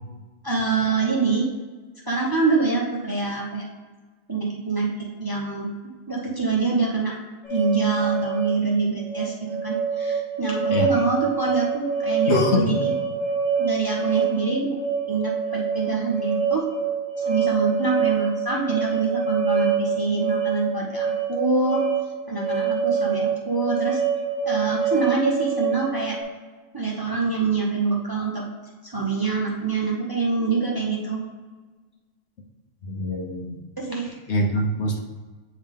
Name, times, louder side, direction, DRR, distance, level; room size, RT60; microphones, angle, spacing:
voice 1, 0.4-1.5 2.1-3.7 4.3-4.9 5.2-5.7 6.1-7.1 7.5-9.3 9.6-12.9 13.6-14.7 15.1-16.7 17.3-21.8 22.3-24.0 24.4-26.2 26.7-28.4 28.8-31.2 33.8-34.2, right 4 dB, 20° right, -3 dB, 0.7 m, -25 dB
sound 1, 7.4-26.2, right 6 dB, 80° left, 2.0 m, -26 dB
voice 2, 12.3-12.8 32.8-33.6 34.3-35.0, left 1 dB, 65° left, 1 dB, 1.1 m, -23 dB
8.2 x 3.5 x 3.6 m, 1.3 s
omnidirectional pair, 1.3 m